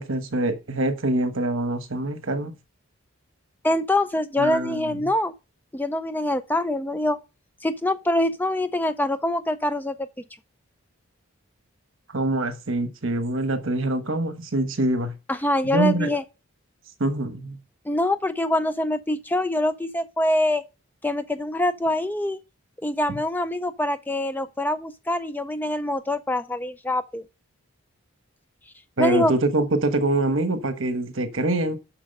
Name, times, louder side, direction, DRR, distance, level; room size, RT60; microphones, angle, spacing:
voice 1, 0.0-2.5 4.4-4.8 12.1-15.1 15.7-16.1 17.0-17.6 29.0-31.8, right 2 dB, 65° right, 1.2 m, -24 dB
voice 2, 3.6-5.3 5.7-7.2 7.6-10.1 15.3-16.2 17.9-20.6 21.0-22.4 22.8-27.2 29.0-29.3, left 1 dB, 10° left, 0.3 m, -24 dB
7.4 x 6.2 x 5.3 m
head